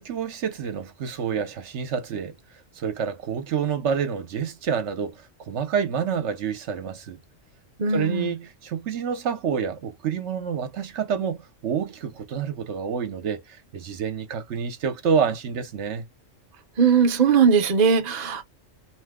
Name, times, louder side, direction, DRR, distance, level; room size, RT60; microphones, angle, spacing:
voice 1, 0.0-2.3 2.8-7.2 7.9-13.4 13.7-16.1, right 7 dB, 65° right, 1.0 m, -28 dB
voice 2, 7.8-8.3 16.8-18.4, right 6 dB, 45° right, 0.7 m, -19 dB
2.9 x 2.1 x 3.4 m
omnidirectional pair, 1.3 m